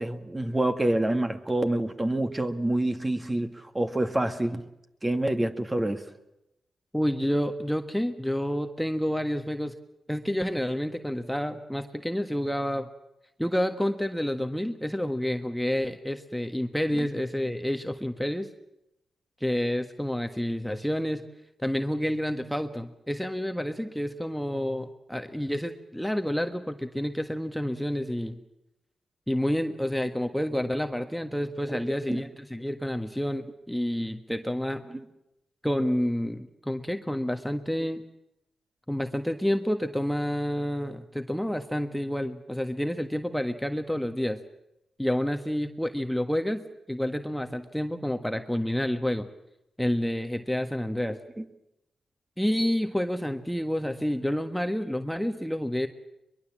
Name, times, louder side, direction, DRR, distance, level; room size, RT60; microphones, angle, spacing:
voice 1, 0.0-4.6 5.0-6.0 17.0-17.1 31.7-31.8 32.1-32.2 34.9-35.0 51.1-51.4, right 1 dB, 25° right, 7 dB, 1.9 m, -27 dB
voice 2, 6.9-9.7 10.1-12.9 13.4-18.5 19.4-21.2 21.6-28.4 29.3-34.8 35.6-38.0 38.9-44.4 45.0-46.6 46.9-49.3 49.8-51.2 52.4-55.9, equal, 5° left, 6 dB, 1.4 m, -29 dB
23.0 x 21.5 x 7.5 m, 0.88 s
supercardioid pair, 45°, 0 cm